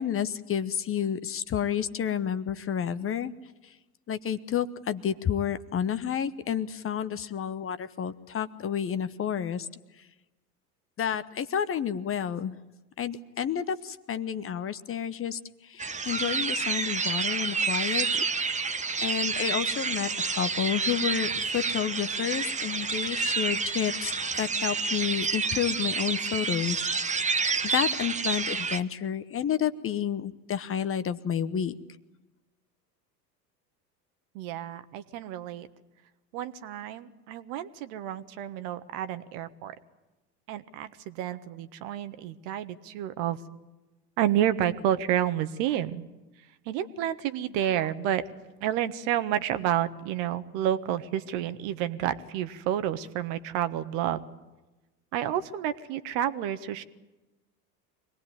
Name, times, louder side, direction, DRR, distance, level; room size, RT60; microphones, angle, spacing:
voice 1, 0.0-3.3 4.1-9.7 11.0-12.6 13.0-18.3 19.0-26.9 27.6-31.8, left 8 dB, 25° left, 13 dB, 1.0 m, -30 dB
sound 1, 15.8-28.8, right 4 dB, 15° right, 1.1 m, -29 dB
voice 2, 34.3-35.7 36.3-39.7 40.5-43.4 44.2-46.0 46.6-48.2 48.6-54.2 55.1-56.8, right 11 dB, 55° right, 12 dB, 1.5 m, -30 dB
24.5 x 19.0 x 9.6 m, 1.1 s
figure-of-eight pair, 80°, 48 cm